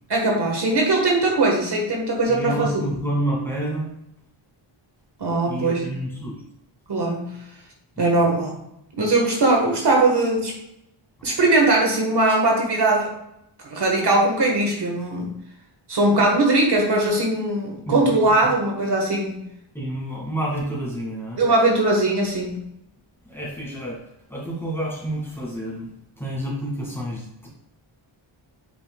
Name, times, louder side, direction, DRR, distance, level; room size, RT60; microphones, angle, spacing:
voice 1, 0.1-2.9 5.2-5.9 6.9-7.4 8.0-8.6 9.0-10.5 11.2-13.1 13.6-15.3 15.9-19.4 21.4-22.6, right 2 dB, 50° right, 0 dB, 1.4 m, -20 dB
voice 2, 2.3-3.9 5.5-6.4 8.0-8.3 17.9-18.0 19.7-21.4 23.3-24.0 24.3-25.9 26.2-27.5, right 1 dB, 5° left, -5 dB, 2.0 m, -29 dB
9.4 x 5.1 x 2.3 m, 0.82 s
wide cardioid pair, 165°, 50 cm